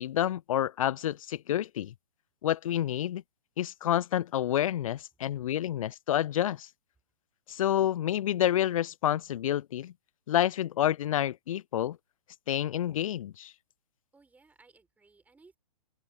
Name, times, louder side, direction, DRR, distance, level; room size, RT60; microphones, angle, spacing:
voice 1, 0.0-1.9 2.4-3.2 3.6-6.7 7.5-9.9 10.3-12.0 12.5-13.5, left 11 dB, 60° left, 0.4 m, -29 dB
voice 2, 14.1-15.6, right 3 dB, 10° right, 5.5 m, -61 dB
open air
figure-of-eight pair, 120°, 20 cm